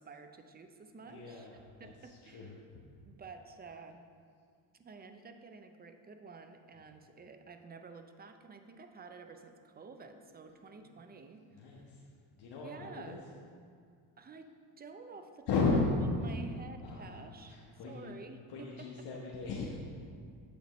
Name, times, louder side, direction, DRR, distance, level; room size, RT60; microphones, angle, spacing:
voice 1, 0.0-1.5 1.8-2.6 3.0-4.1 4.7-11.8 12.6-13.3 14.2-15.5 15.7-15.8 16.2-17.6 17.9-19.1, right 4 dB, 20° right, 7 dB, 0.5 m, -51 dB
voice 2, 1.1-1.5 1.8-2.5 10.8-10.9 11.6-12.0 12.4-13.2 15.5-15.9 16.8-17.1 17.5-18.1 18.5-19.8, left 4 dB, 65° left, -3 dB, 1.1 m, -35 dB
8.1 x 7.6 x 3.1 m, 2.2 s
cardioid pair, 95°, 44 cm